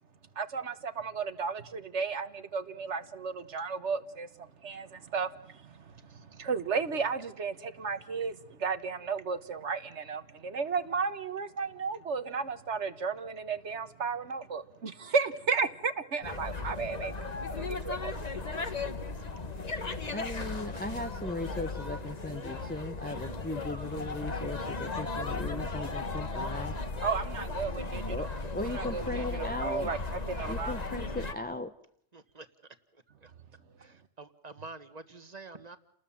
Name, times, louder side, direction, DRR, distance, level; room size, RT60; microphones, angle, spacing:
voice 1, 0.4-18.5 27.0-28.3 28.7-30.0 30.3-30.7, right 5 dB, 65° right, 1.6 m, -34 dB
sound 1, 16.2-31.3, left 3 dB, 35° left, 1.4 m, -36 dB
voice 2, 20.1-26.8 28.1-29.9 30.5-31.7, left 2 dB, 10° left, 0.8 m, -37 dB
voice 3, 32.1-32.5 33.8-35.8, right 3 dB, 30° right, 1.6 m, -47 dB
30.0 x 20.0 x 7.4 m
omnidirectional pair, 1.3 m